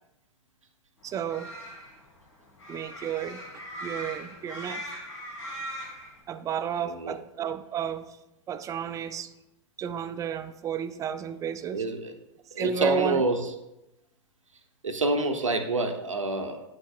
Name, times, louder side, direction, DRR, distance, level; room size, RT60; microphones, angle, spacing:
sound 1, 1.0-6.2, equal, 80° left, 2.5 m, -40 dB
voice 1, 1.0-1.5 2.7-3.4 3.8-4.9 6.3-8.2 8.5-9.3 9.8-11.8 12.6-13.2, right 7 dB, 20° right, 12 dB, 0.4 m, -31 dB
voice 2, 6.8-7.1 11.7-12.1 12.5-13.4 14.8-16.6, right 2 dB, 85° right, 6 dB, 0.8 m, -27 dB
9.2 x 6.4 x 2.4 m, 0.92 s
figure-of-eight pair, 95°, 16 cm